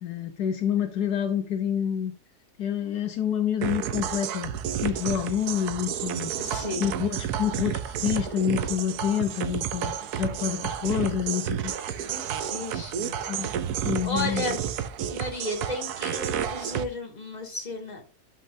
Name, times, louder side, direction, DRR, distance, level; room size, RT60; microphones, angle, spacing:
voice 1, 0.0-2.1 2.6-4.5 4.8-6.3 6.8-12.1 13.3-13.5 13.8-14.6, left 9 dB, 75° left, 1.3 m, -28 dB
sound 1, 3.6-16.8, right 9 dB, 75° right, 1.2 m, -31 dB
voice 2, 6.4-6.9 10.2-10.4 12.1-14.7 15.1-18.0, left 2 dB, 25° left, 2.2 m, -34 dB
11.0 x 5.4 x 2.6 m
omnidirectional pair, 1.7 m